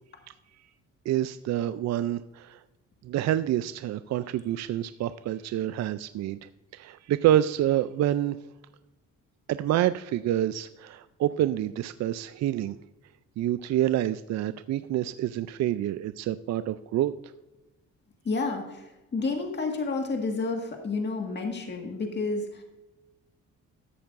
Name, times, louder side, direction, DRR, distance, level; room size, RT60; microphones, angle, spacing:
voice 1, 1.1-2.6 3.0-8.4 9.5-12.8 13.4-17.1, right 12 dB, 60° right, 13 dB, 0.4 m, -27 dB
voice 2, 18.2-22.6, left 3 dB, 35° left, 2 dB, 1.8 m, -30 dB
14.0 x 8.7 x 2.5 m, 1.0 s
cardioid pair, 90°, 30 cm